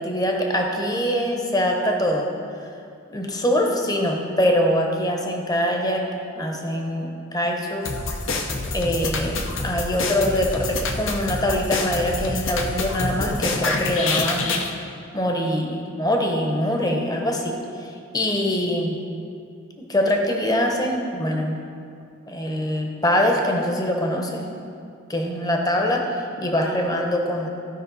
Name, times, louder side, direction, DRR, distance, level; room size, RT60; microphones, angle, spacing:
voice 1, 0.0-2.3 3.1-6.1 6.4-7.9 8.7-14.6 15.1-19.0 19.9-21.6 22.3-24.5 25.1-27.5, equal, 20° left, 1 dB, 0.9 m, -23 dB
sound 1, 7.8-14.7, left 3 dB, 70° left, 0.8 m, -27 dB
15.0 x 5.2 x 4.1 m, 2.4 s
head